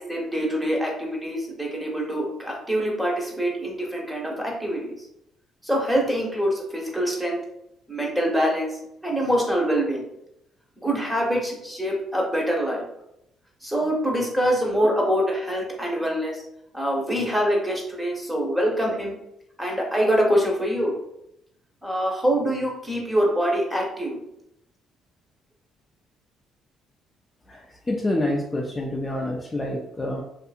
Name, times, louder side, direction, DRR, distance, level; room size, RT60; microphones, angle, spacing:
voice 1, 0.0-5.0 5.6-7.4 7.9-10.0 10.8-12.8 13.6-16.4 16.7-19.2 19.6-20.9 21.8-24.2, equal, 5° right, -1 dB, 0.9 m, -24 dB
voice 2, 27.5-30.2, left 1 dB, 20° left, -1 dB, 0.4 m, -27 dB
2.6 x 2.6 x 2.4 m, 0.79 s
supercardioid pair, 70°, 0 cm